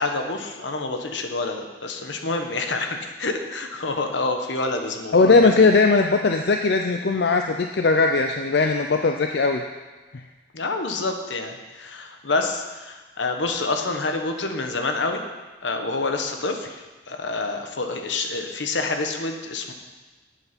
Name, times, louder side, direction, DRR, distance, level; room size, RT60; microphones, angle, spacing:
voice 1, 0.0-5.7 10.5-15.2 15.6-19.7, left 3 dB, 75° left, 5 dB, 1.1 m, -27 dB
voice 2, 5.1-9.6, left 3 dB, 60° left, 4 dB, 0.5 m, -19 dB
8.2 x 7.8 x 5.8 m, 1.3 s
head